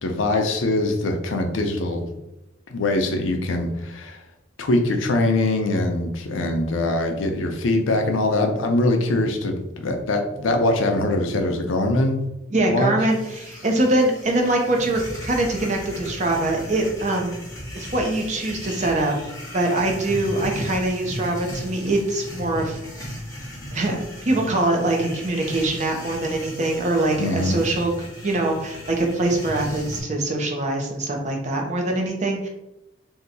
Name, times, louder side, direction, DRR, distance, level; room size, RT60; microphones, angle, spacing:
voice 1, 0.0-2.1 2.7-4.2 4.6-12.2 12.7-12.9 27.2-27.6, left 2 dB, 85° left, 4 dB, 0.5 m, -22 dB
voice 2, 12.5-17.4 17.7-19.2 19.5-22.8 23.7-32.5, right 2 dB, 35° right, 1 dB, 0.5 m, -23 dB
sound 1, 13.1-30.0, equal, 15° left, 0.9 m, -36 dB
2.8 x 2.2 x 3.9 m, 0.93 s
head